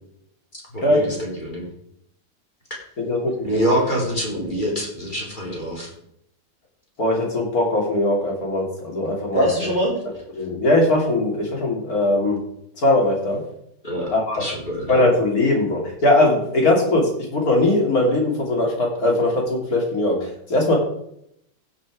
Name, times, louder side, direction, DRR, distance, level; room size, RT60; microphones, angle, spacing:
voice 1, 0.5-1.7 3.4-5.9 9.3-10.0 13.8-15.0, equal, 25° left, -3 dB, 3.2 m, -25 dB
voice 2, 3.0-3.6 7.0-9.5 10.4-12.4 12.8-13.4 14.1-14.4 14.9-20.8, left 1 dB, 45° left, 0 dB, 3.3 m, -20 dB
15.5 x 5.7 x 4.9 m, 0.74 s
omnidirectional pair, 2.2 m